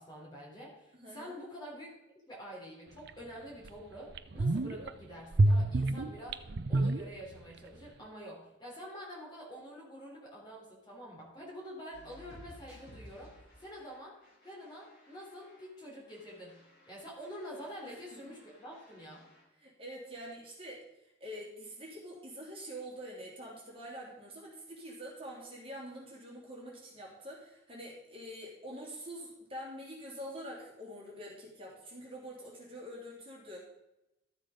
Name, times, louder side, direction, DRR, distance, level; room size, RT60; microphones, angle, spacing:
voice 1, 0.0-2.0 2.3-6.4 6.7-13.3 13.6-14.2 14.4-16.6 16.9-19.2, equal, 20° left, -4 dB, 3.5 m, -47 dB
voice 2, 1.0-1.3 17.8-18.0 19.6-20.8 21.2-33.6, equal, 30° right, -4 dB, 3.0 m, -45 dB
sound 1, 3.1-3.2 3.6-3.7 4.1-4.9 5.3-7.6 7.8-7.9, right 2 dB, 55° right, 0.5 m, -28 dB
sound 2, 11.9-15.8 16.1-19.4, left 1 dB, 45° left, 4.9 m, -57 dB
12.5 x 7.4 x 5.1 m, 0.91 s
head